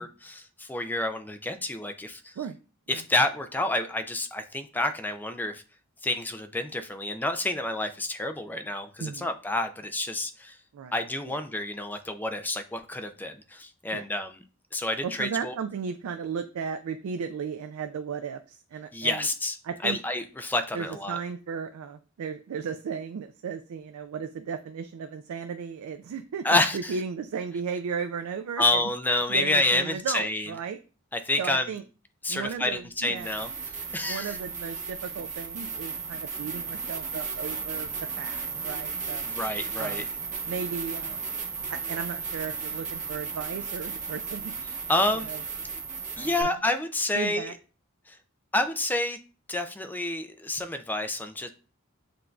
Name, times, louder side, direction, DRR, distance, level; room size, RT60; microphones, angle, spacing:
voice 1, 0.0-2.3 2.9-5.6 6.0-10.6 10.9-14.4 14.7-15.6 18.9-19.6 19.8-21.2 26.4-27.0 28.6-30.5 31.1-31.8 32.2-34.4 39.2-40.0 44.6-45.3 46.2-47.6 48.1-48.2 48.5-49.2 49.5-51.5, left 2 dB, 10° left, 7 dB, 0.3 m, -29 dB
voice 2, 15.0-19.3 19.6-20.0 20.7-26.4 26.7-28.8 29.3-30.8 31.4-31.8 32.3-33.4 34.1-37.9 38.1-39.3 39.8-40.1 40.5-41.2 41.7-44.5 45.3-45.4 46.2-46.5 47.1-47.5, right 6 dB, 85° right, 7 dB, 0.3 m, -35 dB
sound 1, 33.1-46.4, right 5 dB, 35° right, 0.8 m, -35 dB
7.6 x 2.6 x 2.3 m, 0.36 s
head